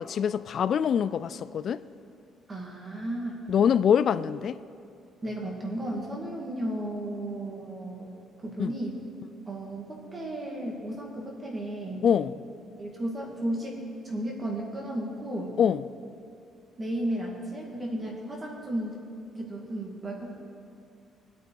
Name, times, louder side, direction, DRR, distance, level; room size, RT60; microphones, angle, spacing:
voice 1, 0.0-1.8 3.5-4.6 8.6-8.7 12.0-12.3 15.6-15.8, left 8 dB, 45° left, 0.3 m, -24 dB
voice 2, 2.5-3.4 5.2-8.1 8.4-9.0 9.5-12.1 12.8-13.8 14.0-15.6 16.8-19.0 19.4-20.3, right 1 dB, 20° right, 2.0 m, -34 dB
23.5 x 8.3 x 4.7 m
cardioid pair, 175°, 0 cm